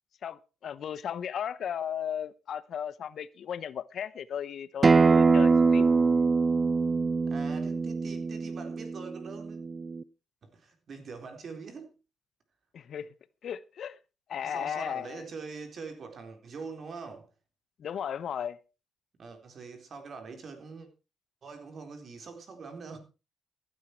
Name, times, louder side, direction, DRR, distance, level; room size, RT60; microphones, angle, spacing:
voice 1, 0.2-5.9 12.7-13.1 13.4-14.0 14.3-15.2 17.8-18.6, left 8 dB, 60° left, 0.8 m, -35 dB
Acoustic guitar, 4.8-10.0, right 4 dB, 30° right, 0.6 m, -24 dB
voice 2, 7.3-9.6 10.4-11.9 14.4-17.3 19.2-20.9 21.4-23.0, right 4 dB, 50° right, 4.0 m, -43 dB
15.5 x 9.4 x 4.6 m
cardioid pair, 90°, 0 cm